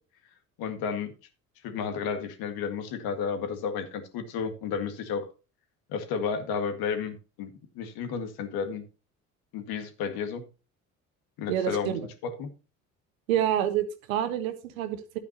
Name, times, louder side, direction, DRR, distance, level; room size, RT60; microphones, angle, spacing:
voice 1, 0.6-1.1 1.6-5.3 5.9-8.8 9.5-10.4 11.4-12.5, left 6 dB, 55° left, 8 dB, 1.9 m, -32 dB
voice 2, 11.5-12.1 13.3-15.2, right 11 dB, 70° right, 10 dB, 1.4 m, -28 dB
11.5 x 9.2 x 2.9 m, 0.31 s
figure-of-eight pair, 55°, 42 cm